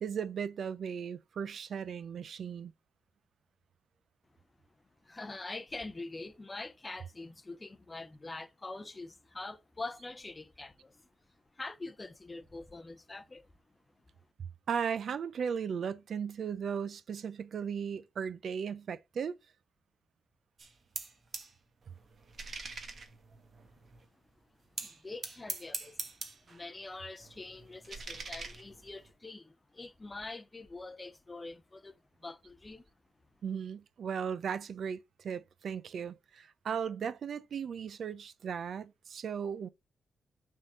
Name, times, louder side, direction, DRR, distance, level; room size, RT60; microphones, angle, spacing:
voice 1, 0.0-2.7 14.7-19.3 33.4-39.7, right 7 dB, 55° right, 0.4 m, -36 dB
voice 2, 5.0-11.0 11.5-13.5 24.8-26.0 26.5-32.8, left 2 dB, 20° left, 0.6 m, -44 dB
sound 1, 20.6-21.5 21.8-24.0 24.8-26.6 26.9-29.1, right 4 dB, 40° right, 1.2 m, -43 dB
6.2 x 3.7 x 5.4 m
wide cardioid pair, 145°, 0 cm